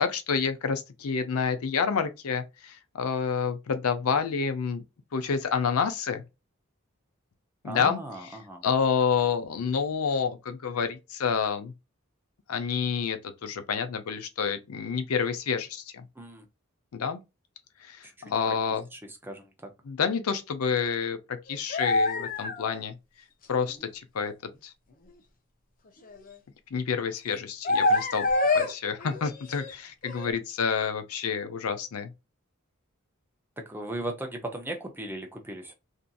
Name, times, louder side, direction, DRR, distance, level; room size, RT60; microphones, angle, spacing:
voice 1, 0.0-4.8 5.1-6.2 7.6-8.0 8.6-11.7 12.5-16.1 16.9-17.2 17.8-18.9 19.9-23.0 23.5-24.3 24.6-24.7 26.7-28.3 28.5-32.1, left 6 dB, 85° left, 0.5 m, -28 dB
voice 2, 7.6-8.6 16.2-16.5 18.2-18.6 18.9-19.7 33.6-35.8, right 1 dB, 10° right, 0.5 m, -37 dB
sound 1, 21.5-22.7 23.8-23.9 26.0-26.3 27.6-28.7 29.0-29.8 30.0-30.3, left 2 dB, 40° left, 0.5 m, -26 dB
2.7 x 2.5 x 2.2 m
head